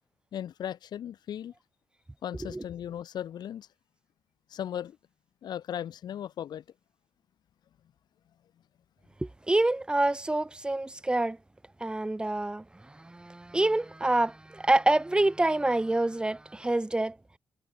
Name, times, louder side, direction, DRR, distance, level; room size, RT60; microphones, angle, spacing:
voice 1, 0.3-1.5 2.2-3.7 4.5-5.0 5.4-6.6, left 10 dB, 85° left, 3.9 m, -37 dB
voice 2, 9.2-11.4 11.8-17.2, right 2 dB, 15° right, 1.2 m, -27 dB
cardioid pair, 105°, 7 cm